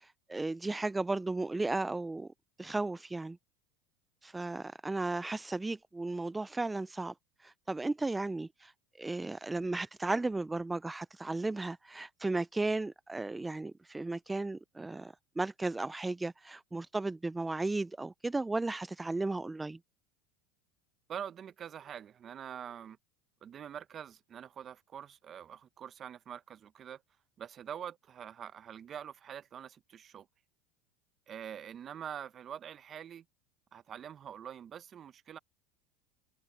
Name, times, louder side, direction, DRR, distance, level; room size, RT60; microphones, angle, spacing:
voice 1, 0.0-2.3 2.6-3.4 4.2-7.1 7.4-8.7 9.0-19.8, right 2 dB, 10° right, 0.4 m, -35 dB
voice 2, 21.1-23.0 23.4-27.0 27.4-30.3 31.3-33.2 33.7-35.4, right 9 dB, 35° right, 0.9 m, -45 dB
hypercardioid pair, 95°, 0 cm